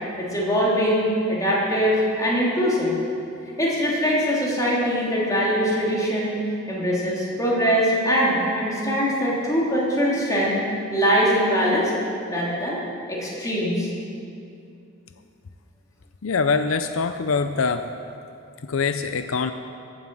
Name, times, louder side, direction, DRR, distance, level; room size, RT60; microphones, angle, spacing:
voice 1, 0.2-2.9 3.6-6.4 6.7-10.6 10.9-11.9 12.3-12.8 13.1-13.9, equal, 15° left, -6 dB, 3.2 m, -22 dB
voice 2, 16.2-17.9 18.6-19.5, left 4 dB, 80° left, 9 dB, 0.6 m, -23 dB
15.0 x 9.5 x 7.6 m, 2.6 s
head